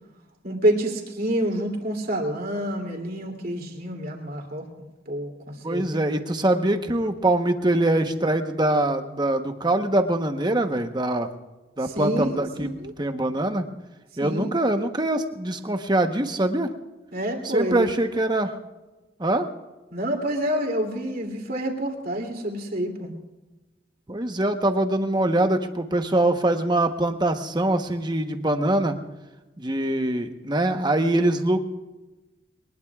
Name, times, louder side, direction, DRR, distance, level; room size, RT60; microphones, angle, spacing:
voice 1, 0.4-4.7 5.1-6.0 11.8-12.9 14.2-14.5 17.1-17.9 19.9-23.1, right 1 dB, 50° right, 1 dB, 2.8 m, -27 dB
voice 2, 5.6-11.3 11.8-13.6 14.2-16.7 17.4-18.5 19.2-19.5 24.1-29.0 29.6-31.6, right 1 dB, 25° right, 6 dB, 1.0 m, -23 dB
23.0 x 20.0 x 2.4 m, 1.1 s
head